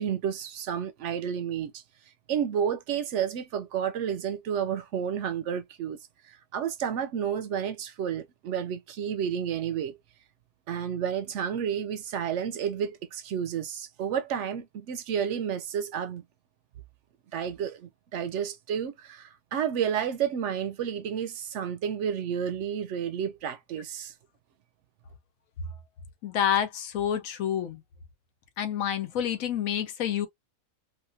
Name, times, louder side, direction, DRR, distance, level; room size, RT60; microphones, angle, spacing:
voice 1, 0.0-1.8 2.3-6.0 6.3-10.0 10.7-16.2 17.3-24.1, right 8 dB, 70° right, 0.8 m, -31 dB
voice 2, 26.2-27.8 28.6-30.3, left 9 dB, 80° left, 1.2 m, -28 dB
3.1 x 2.4 x 2.5 m
omnidirectional pair, 1.4 m